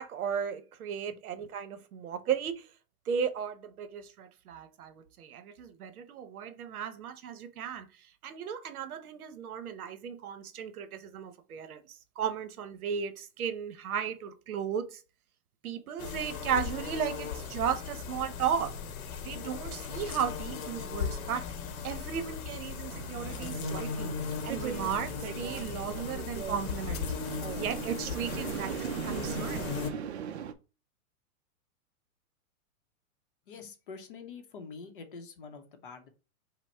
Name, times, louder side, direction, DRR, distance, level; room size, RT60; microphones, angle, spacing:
voice 1, 0.0-2.5 3.1-7.9 8.2-11.8 12.2-15.0 15.6-18.8 19.2-21.4 21.8-24.1 24.4-27.0 27.5-28.8 29.0-29.7, right 7 dB, 80° right, 0.9 m, -35 dB
sound 1, 16.0-29.9, left 6 dB, 70° left, 0.9 m, -37 dB
sound 2, 22.9-30.5, right 8 dB, 50° right, 0.5 m, -39 dB
voice 2, 33.5-36.1, left 5 dB, 40° left, 0.7 m, -46 dB
5.9 x 2.1 x 4.2 m
hypercardioid pair, 170°, 43 cm